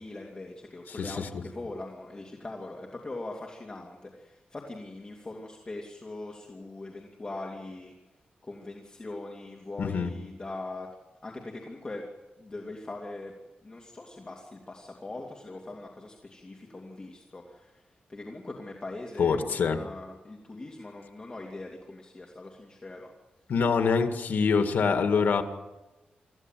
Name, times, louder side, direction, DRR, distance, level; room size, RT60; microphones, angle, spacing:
voice 1, 0.0-4.1 4.5-7.9 8.4-10.9 11.2-11.3 11.6-12.0 12.4-13.3 13.6-17.4 18.1-23.1, left 2 dB, 25° left, 0 dB, 2.6 m, -41 dB
voice 2, 0.9-1.3 9.8-10.1 19.2-19.8 23.5-25.4, left 5 dB, 80° left, 7 dB, 2.1 m, -25 dB
26.0 x 15.0 x 9.2 m, 1.1 s
wide cardioid pair, 130°, 3 cm